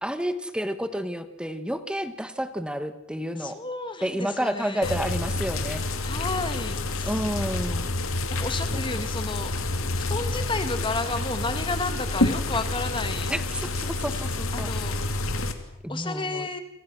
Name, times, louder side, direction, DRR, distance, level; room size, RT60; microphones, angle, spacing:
voice 1, 0.0-3.6 4.0-5.9 7.1-7.9 8.7-8.8 13.3-14.7 15.8-16.5, equal, 5° right, 10 dB, 1.4 m, -30 dB
voice 2, 3.4-5.0 6.0-7.3 8.3-9.5 10.0-13.3 14.5-15.0 15.9-16.6, left 3 dB, 25° left, 8 dB, 1.9 m, -32 dB
sound 1, 4.8-15.5, left 2 dB, 70° left, 2.6 m, -28 dB
28.5 x 26.0 x 6.3 m, 0.85 s
head